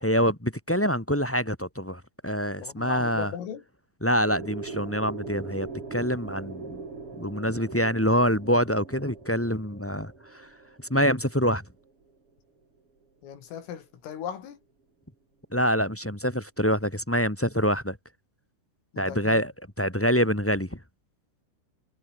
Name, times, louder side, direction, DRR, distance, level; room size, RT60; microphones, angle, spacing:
voice 1, 0.0-3.3 4.0-6.8 7.2-10.5 10.9-11.6 15.5-17.9 18.9-19.5 19.8-20.8, equal, 5° left, 1.1 m, -25 dB
voice 2, 2.6-3.6 13.2-14.6 18.9-19.4, left 9 dB, 80° left, 6.0 m, -37 dB
sound 1, 4.3-12.1, right 4 dB, 30° right, 4.9 m, -41 dB
omnidirectional pair, 5.8 m